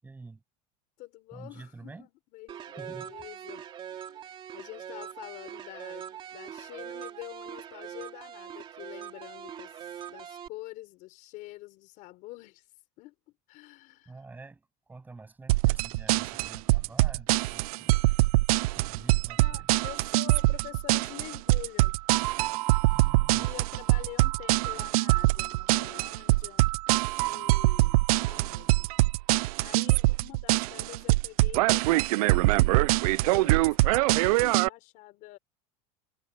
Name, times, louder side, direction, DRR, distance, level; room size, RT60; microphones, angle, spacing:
voice 1, 0.0-0.4 1.3-2.1 2.8-3.1 14.1-14.6 14.9-17.9 18.6-19.7 22.9-23.5, right 3 dB, 10° right, 8.0 m, -47 dB
voice 2, 1.0-4.3 4.5-12.7 13.0-13.1 13.5-14.2 19.4-22.0 23.4-26.7 27.3-28.9 29.6-32.5 32.8-32.9 33.2-35.4, left 19 dB, 45° left, 4.1 m, -46 dB
sound 1, 2.5-10.5, right 9 dB, 25° right, 2.5 m, -42 dB
sound 2, 15.5-34.7, right 20 dB, 85° right, 0.4 m, -24 dB
supercardioid pair, 165°, 18 cm